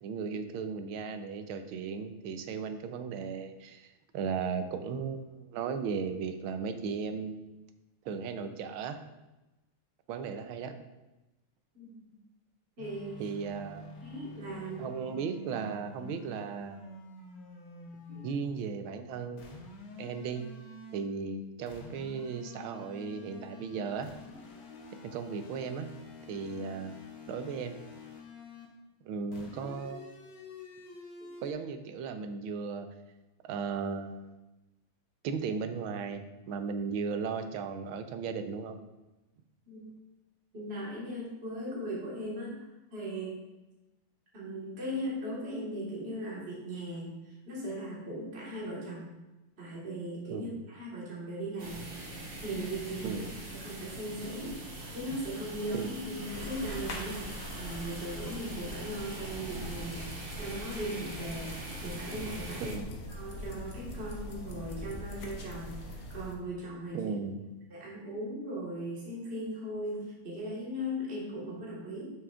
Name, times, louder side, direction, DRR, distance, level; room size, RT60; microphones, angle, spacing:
voice 1, 0.0-7.4 8.0-9.0 10.1-10.7 13.2-13.9 14.8-16.8 18.2-20.4 20.9-24.1 25.0-25.9 26.3-27.0 27.3-27.8 29.0-30.0 31.4-32.9 33.4-34.3 35.2-38.8 50.3-50.6 53.0-53.3 55.7-56.0 62.6-62.9 66.9-67.4, right 5 dB, 80° right, 8 dB, 1.4 m, -36 dB
sound 1, 12.8-18.5 19.4-21.1 21.7-28.8 29.3-31.5, left 3 dB, 75° left, 1.8 m, -48 dB
voice 2, 12.8-13.2 14.0-14.9 18.1-18.3 20.0-20.1 39.7-39.9 40.5-42.6 42.9-43.3 44.3-47.1 47.5-49.1 49.6-51.8 52.4-53.2 53.5-54.5 54.9-60.1 60.4-61.5 61.8-62.8 63.1-67.1 67.7-72.1, equal, 30° right, -5 dB, 1.6 m, -38 dB
sound 2, 51.6-62.7, right 1 dB, 60° right, 2.1 m, -43 dB
sound 3, 56.3-66.4, left 1 dB, 55° left, 1.1 m, -42 dB
9.3 x 5.9 x 2.4 m, 1.0 s
omnidirectional pair, 2.3 m